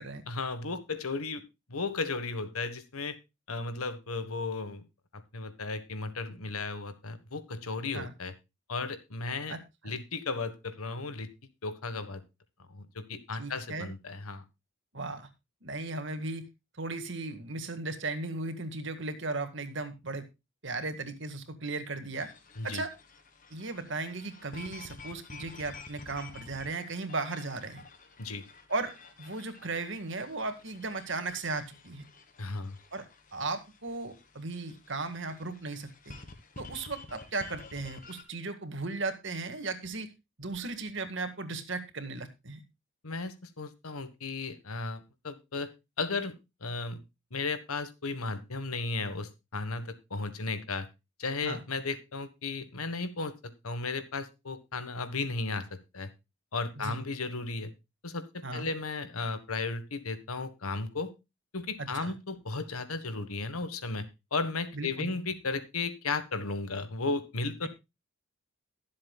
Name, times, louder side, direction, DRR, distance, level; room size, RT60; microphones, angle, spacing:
voice 1, 0.3-1.4 1.7-3.2 3.5-4.8 5.1-8.3 8.7-9.6 9.8-11.3 11.6-12.2 12.6-14.4 22.6-22.8 28.2-28.4 32.4-32.8 43.0-45.7 46.0-46.3 46.6-47.0 47.3-50.9 51.2-56.1 56.5-57.7 58.0-61.1 61.5-67.7, left 3 dB, 85° left, 11 dB, 1.5 m, -35 dB
voice 2, 9.5-9.9 13.4-13.9 14.9-15.3 15.6-16.4 16.8-20.2 20.6-22.3 22.6-22.9 23.5-27.8 28.7-28.9 29.2-32.0 32.9-33.0 33.3-36.2 36.6-40.1 40.4-42.6 51.4-51.6 56.8-57.0 58.4-58.7 61.8-62.1 64.7-65.1 67.6-67.7, right 3 dB, 55° right, 8 dB, 1.9 m, -36 dB
sound 1, 22.2-38.2, left 3 dB, 40° left, 1.7 m, -51 dB
22.5 x 7.6 x 2.3 m, 0.25 s
head